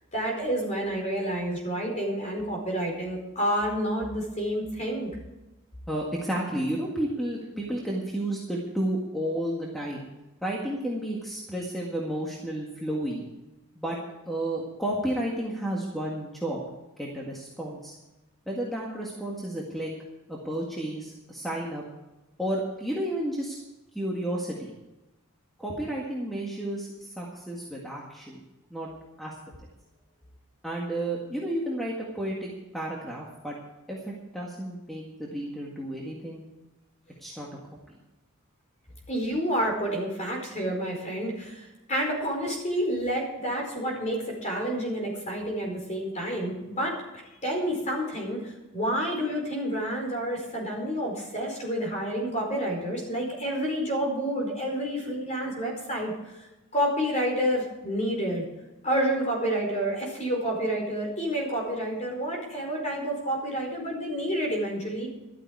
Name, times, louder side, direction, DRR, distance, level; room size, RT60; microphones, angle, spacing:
voice 1, 0.1-5.1 39.1-47.0 47.4-56.1 56.4-56.5 56.7-58.4 58.8-65.1, equal, 30° left, 0 dB, 4.8 m, -29 dB
voice 2, 5.9-10.0 10.4-13.3 13.8-14.0 14.3-16.6 17.0-17.9 18.5-19.9 20.3-21.8 22.4-23.6 23.9-24.7 25.6-28.4 28.7-28.9 29.2-29.3 30.6-33.6 33.9-36.4 37.2-37.5, right 1 dB, ahead, -3 dB, 1.8 m, -32 dB
13.5 x 12.5 x 4.8 m, 1.0 s
head